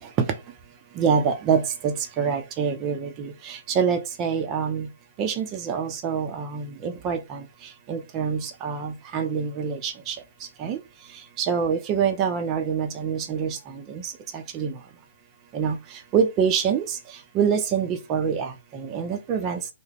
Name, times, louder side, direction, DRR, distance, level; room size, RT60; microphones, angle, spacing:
voice 1, 1.0-4.9 5.2-7.4 7.9-10.2 10.6-10.8 11.4-13.6 13.9-14.0 14.3-14.7 15.5-15.8 16.1-16.8 17.3-19.6, right 6 dB, 25° right, 0.5 m, -25 dB
3.4 x 2.1 x 3.3 m
hypercardioid pair, 145°, 0 cm